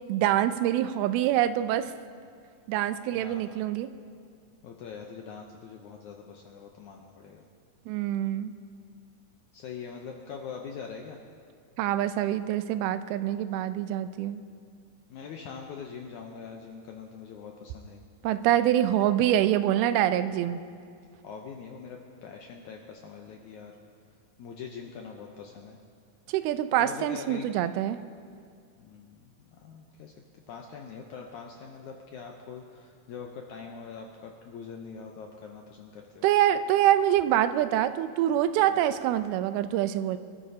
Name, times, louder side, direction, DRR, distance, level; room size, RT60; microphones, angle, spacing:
voice 1, 0.1-1.9 2.7-3.9 7.9-8.5 11.8-14.4 18.2-20.6 26.3-28.0 36.2-40.2, right 12 dB, 90° right, 11 dB, 2.5 m, -25 dB
voice 2, 3.1-3.5 4.6-7.5 9.5-11.2 15.1-18.0 21.2-23.7 24.4-25.8 26.8-27.5 28.8-30.1 30.5-36.2 38.7-38.8, left 6 dB, 80° left, 1 dB, 1.8 m, -43 dB
24.5 x 13.5 x 2.8 m, 2.3 s
omnidirectional pair, 4.4 m